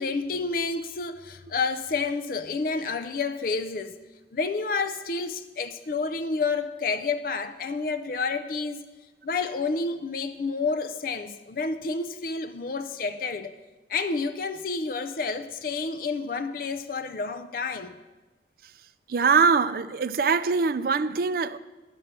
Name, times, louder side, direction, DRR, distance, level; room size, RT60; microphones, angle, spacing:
voice 1, 0.0-4.0 4.3-8.8 9.2-13.6 13.9-17.9, left 4 dB, 50° left, 0.4 m, -29 dB
voice 2, 19.1-21.6, right 5 dB, 55° right, 0.4 m, -23 dB
11.0 x 5.6 x 6.7 m
head